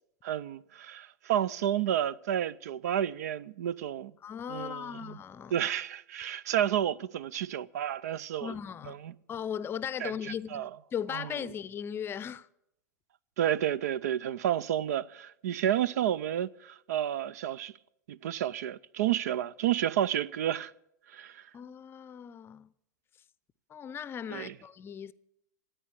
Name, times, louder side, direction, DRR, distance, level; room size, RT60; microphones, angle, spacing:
voice 1, 0.2-4.1 4.5-5.2 5.5-8.5 8.9-9.1 10.0-10.1 10.5-10.7 11.1-11.3 13.4-17.7 18.1-20.7 21.1-21.4 24.3-24.5, right 11 dB, 60° right, 0.5 m, -31 dB
voice 2, 4.2-5.7 8.4-9.0 9.3-12.5 21.5-22.7 23.7-25.1, left 8 dB, 25° left, 0.6 m, -38 dB
14.5 x 9.0 x 9.8 m
figure-of-eight pair, 95°, 10 cm